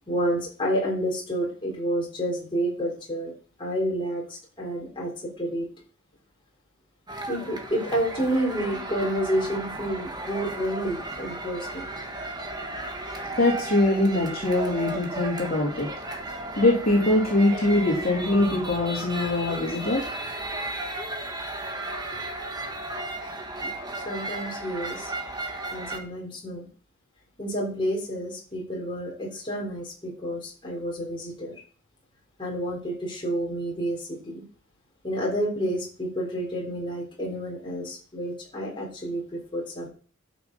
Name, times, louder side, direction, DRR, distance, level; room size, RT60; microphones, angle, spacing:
voice 1, 0.1-3.3 3.6-5.1 5.4-5.7 7.3-11.9 23.6-25.1 25.7-26.7 27.4-31.6 32.4-34.4 35.0-39.9, right 1 dB, 25° left, -3 dB, 3.8 m, -29 dB
sound 1, 7.1-26.0, right 2 dB, 20° right, 1.5 m, -34 dB
voice 2, 13.4-15.9 16.6-20.0, left 2 dB, 45° left, -3 dB, 3.2 m, -23 dB
12.0 x 6.3 x 5.4 m, 0.41 s
head